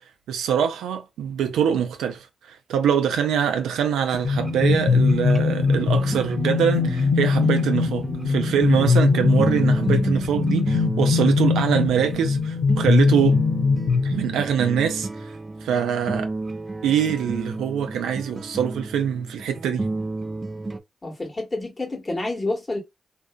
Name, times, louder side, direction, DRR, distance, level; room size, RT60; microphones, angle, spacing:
voice 1, 0.3-13.4 14.0-15.3 15.6-16.3 16.8-19.9, right 8 dB, 90° right, 0.4 m, -24 dB
sound 1, 4.1-14.6, left 5 dB, 90° left, 0.5 m, -21 dB
sound 2, 4.3-20.8, right 2 dB, 35° right, 0.4 m, -32 dB
voice 2, 21.0-22.8, left 2 dB, 35° left, 1.3 m, -28 dB
2.6 x 2.4 x 2.3 m
supercardioid pair, 45°, 0 cm